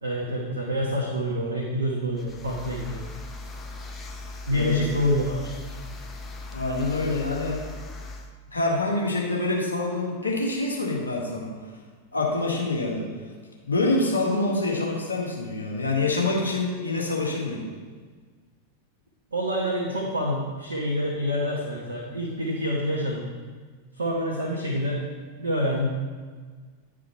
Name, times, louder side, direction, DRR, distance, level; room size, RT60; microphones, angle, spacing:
voice 1, 0.0-3.0 4.5-5.5 19.3-23.3 24.0-25.0 25.4-25.9, equal, 75° right, -2 dB, 1.2 m, -27 dB
sound 1, 2.1-8.3, left 2 dB, 15° left, 1.0 m, -39 dB
voice 2, 6.5-7.6 8.5-11.5 12.1-13.1 13.7-17.7, left 2 dB, 75° left, -2 dB, 1.8 m, -26 dB
10.5 x 5.0 x 4.5 m, 1.5 s
figure-of-eight pair, 90°, 0 cm